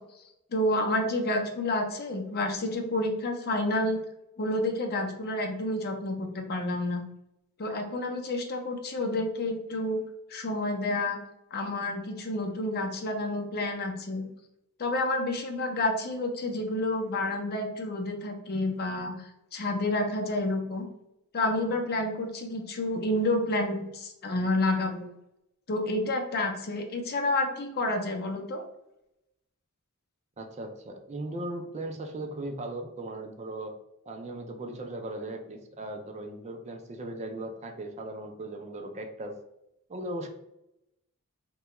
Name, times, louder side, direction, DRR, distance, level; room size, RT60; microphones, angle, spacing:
voice 1, 0.5-4.0 4.4-7.0 7.6-10.0 10.3-11.2 11.5-14.3 14.8-20.8 21.3-25.1 25.7-28.6, left 2 dB, 45° left, 3 dB, 0.6 m, -29 dB
voice 2, 30.4-33.7 34.1-39.3 39.9-40.3, right 1 dB, 30° right, 4 dB, 0.4 m, -38 dB
3.2 x 2.2 x 2.9 m, 0.86 s
head